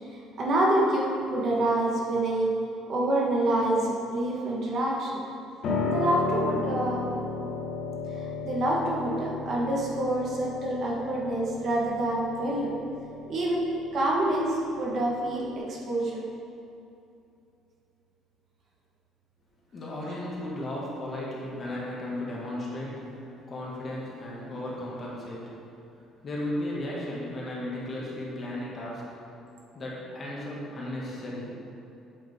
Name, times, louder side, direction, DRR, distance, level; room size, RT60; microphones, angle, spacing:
voice 1, 0.4-2.6 2.9-5.2 5.8-7.1 8.1-12.8 13.3-16.2, right 1 dB, 45° right, -3 dB, 1.4 m, -27 dB
Piano, 5.6-15.6, left 3 dB, 55° left, 1.4 m, -34 dB
voice 2, 19.7-25.6 26.2-29.1 29.7-31.5, left 1 dB, 30° left, -5 dB, 2.0 m, -35 dB
8.3 x 7.3 x 3.6 m, 2.7 s
cardioid pair, 140°, 0 cm